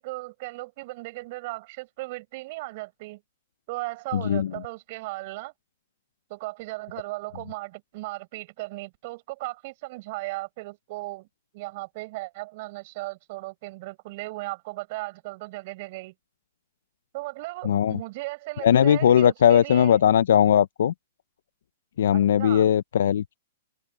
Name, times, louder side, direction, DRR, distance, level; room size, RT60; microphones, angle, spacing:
voice 1, 0.0-3.2 3.7-5.5 6.3-11.3 11.5-16.1 17.1-20.0 22.1-22.7, right 22 dB, 40° right, 6.6 m, -36 dB
voice 2, 4.1-4.5 17.6-18.0 18.6-20.9 22.0-23.4, left 9 dB, 75° left, 0.4 m, -19 dB
open air
hypercardioid pair, 160°, 0 cm